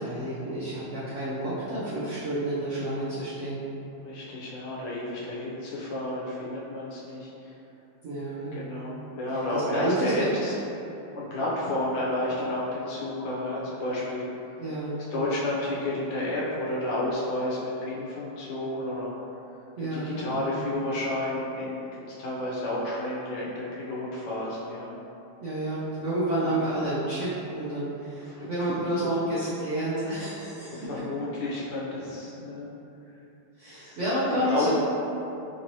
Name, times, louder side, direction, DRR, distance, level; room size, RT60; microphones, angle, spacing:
voice 1, 0.0-3.6 8.0-8.7 9.5-10.3 14.6-15.0 19.8-20.4 25.4-30.8 33.6-34.7, right 1 dB, 80° right, -11 dB, 0.6 m, -30 dB
voice 2, 4.0-7.5 8.5-10.5 11.1-14.3 15.1-19.1 19.9-24.9 26.4-26.6 28.2-28.8 30.8-32.7 33.8-34.0 34.3-34.7, left 1 dB, 90° left, -6 dB, 1.7 m, -31 dB
4.5 x 2.7 x 3.0 m, 2.9 s
omnidirectional pair, 2.3 m